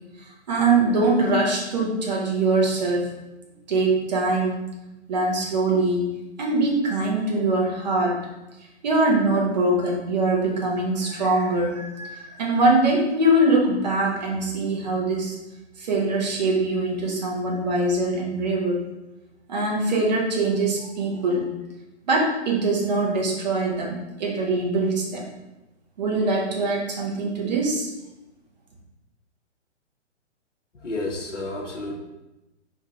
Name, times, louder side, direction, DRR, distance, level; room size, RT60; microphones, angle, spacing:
voice 1, 0.5-3.1 3.7-4.7 5.1-6.1 6.4-8.2 8.8-15.4 15.8-18.8 19.5-21.5 22.1-25.3 26.0-27.9, right 2 dB, 35° right, -2 dB, 0.8 m, -23 dB
voice 2, 30.7-32.0, left 2 dB, 90° left, -1 dB, 0.7 m, -31 dB
3.6 x 2.4 x 2.9 m, 0.98 s
figure-of-eight pair, 125°, 35 cm